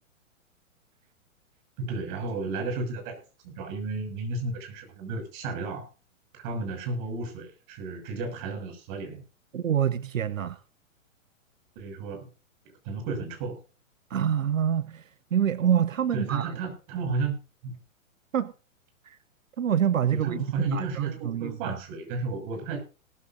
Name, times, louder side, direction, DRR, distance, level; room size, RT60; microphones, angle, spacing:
voice 1, 1.8-3.2 3.4-5.9 6.3-9.2 11.7-12.3 12.8-13.6 16.1-17.3 17.6-17.8 20.1-22.8, right 3 dB, 40° right, 6.3 m, -32 dB
voice 2, 9.5-10.6 14.1-16.6 18.3-18.5 19.0-19.2 19.6-21.7, right 9 dB, 75° right, 0.8 m, -26 dB
18.5 x 14.0 x 2.6 m
figure-of-eight pair, 110°, 40 cm